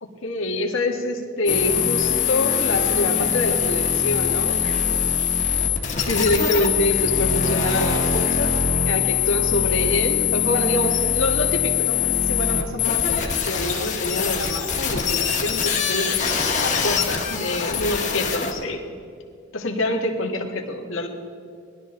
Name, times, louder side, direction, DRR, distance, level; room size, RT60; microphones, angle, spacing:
voice 1, 0.2-4.8 6.1-8.6 8.8-18.8 19.5-21.1, left 2 dB, 75° left, 1 dB, 1.7 m, -26 dB
sound 1, 1.5-18.5, left 7 dB, 35° left, 1.6 m, -22 dB
20.0 x 12.5 x 3.8 m, 2.3 s
head